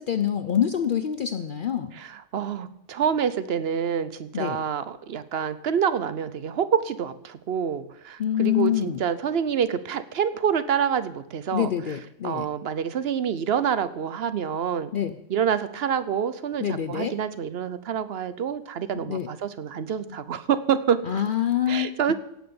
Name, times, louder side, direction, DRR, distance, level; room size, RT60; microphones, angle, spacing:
voice 1, 0.0-1.9 4.3-4.6 8.2-9.0 11.5-12.5 14.9-15.2 16.6-17.1 18.9-19.3 21.0-22.1, left 10 dB, 55° left, 10 dB, 0.6 m, -26 dB
voice 2, 1.9-11.7 12.2-14.9 15.3-21.0 21.7-22.1, right 8 dB, 55° right, 14 dB, 0.8 m, -27 dB
17.0 x 6.1 x 7.0 m, 0.80 s
omnidirectional pair, 1.4 m